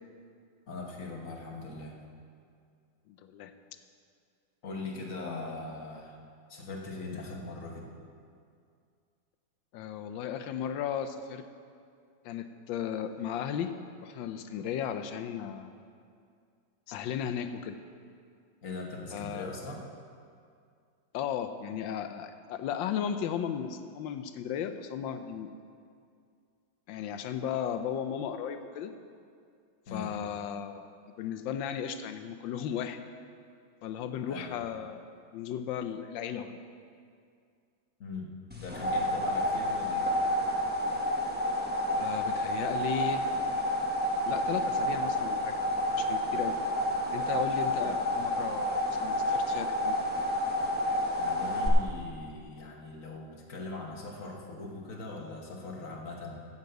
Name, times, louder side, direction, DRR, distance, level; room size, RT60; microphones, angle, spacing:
voice 1, 0.7-2.0 4.6-6.2 6.5-7.9 18.6-19.8 29.9-30.1 34.3-34.5 38.0-40.1 47.7-47.9 51.2-56.4, left 3 dB, 45° left, 0 dB, 1.7 m, -40 dB
voice 2, 3.1-3.5 9.7-11.4 12.2-13.7 14.0-15.7 16.9-17.8 19.1-19.5 21.1-25.5 26.9-28.9 29.9-30.9 31.2-33.0 33.8-35.0 35.3-36.5 42.0-43.3 44.2-45.6 46.0-46.6 47.1-50.0, left 8 dB, 85° left, 9 dB, 1.4 m, -35 dB
sound 1, 38.5-51.7, left 1 dB, 5° right, 0.8 m, -30 dB
9.4 x 7.3 x 7.8 m, 2.3 s
omnidirectional pair, 2.0 m